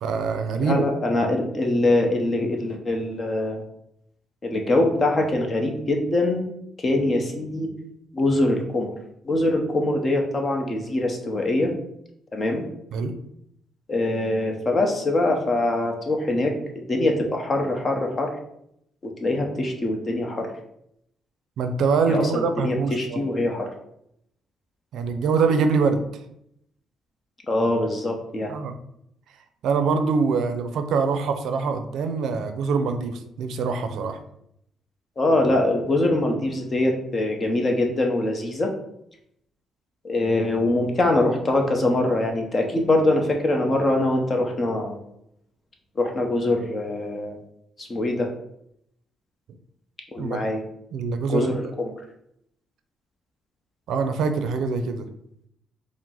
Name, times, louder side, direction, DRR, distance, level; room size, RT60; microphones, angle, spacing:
voice 1, 0.0-0.8 12.9-13.1 21.6-23.2 24.9-26.0 28.5-28.8 29.6-34.2 50.2-50.4 50.9-51.5 53.9-55.1, right 5 dB, 75° right, 7 dB, 0.5 m, -24 dB
voice 2, 0.6-3.6 4.4-6.5 6.8-7.7 8.1-8.9 9.2-11.7 12.3-12.7 13.9-18.3 19.0-20.5 22.1-23.7 27.5-28.5 35.2-38.7 40.0-45.0 46.0-47.4 47.8-48.3 50.1-50.6 51.3-51.9, left 2 dB, 35° left, 2 dB, 0.8 m, -23 dB
4.5 x 2.1 x 3.8 m, 0.75 s
cardioid pair, 90°, 0 cm